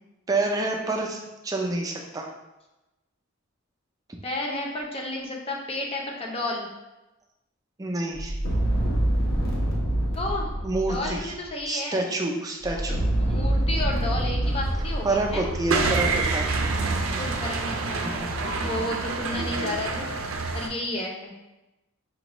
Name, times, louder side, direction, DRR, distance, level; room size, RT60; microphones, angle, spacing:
voice 1, 0.3-2.3 7.8-8.4 10.6-11.3 11.7-13.0 15.0-16.6 18.0-18.1, right 2 dB, 15° right, 1 dB, 0.4 m, -28 dB
voice 2, 4.2-6.7 10.2-10.5 10.9-12.0 12.9-15.4 17.1-18.1 18.6-20.1 20.5-21.3, left 2 dB, 30° left, -1 dB, 0.6 m, -32 dB
sound 1, 8.1-11.4 12.6-15.9, right 1 dB, 70° left, 0.9 m, -26 dB
sound 2, 14.4-20.7, right 3 dB, 75° right, 0.5 m, -28 dB
5.0 x 2.3 x 3.0 m, 1.0 s
head